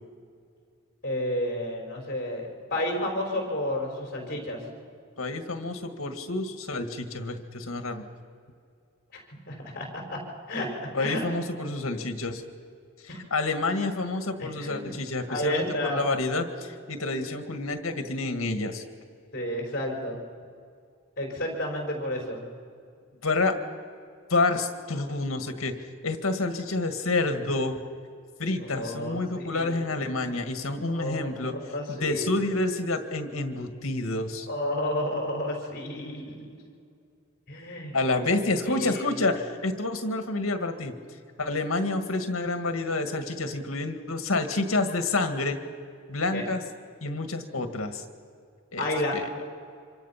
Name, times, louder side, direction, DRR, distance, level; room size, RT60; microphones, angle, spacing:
voice 1, 1.0-4.6 9.1-9.2 9.5-10.2 10.5-11.2 13.1-13.2 14.4-14.9 15.3-16.0 19.3-20.2 21.2-22.4 28.6-29.8 30.9-32.3 34.5-36.3 37.5-38.3 38.6-39.0 46.3-46.4 48.8-49.2, left 1 dB, 45° left, 0 dB, 5.0 m, -31 dB
voice 2, 5.2-8.0 10.9-12.4 13.3-18.8 23.2-23.6 24.3-25.7 26.0-27.8 28.4-31.5 31.9-34.5 37.9-40.9 41.4-45.6 46.1-46.6 47.0-48.0 48.7-48.8 49.1-49.3, left 2 dB, 85° left, 6 dB, 1.8 m, -28 dB
26.5 x 26.0 x 5.8 m, 2.3 s
head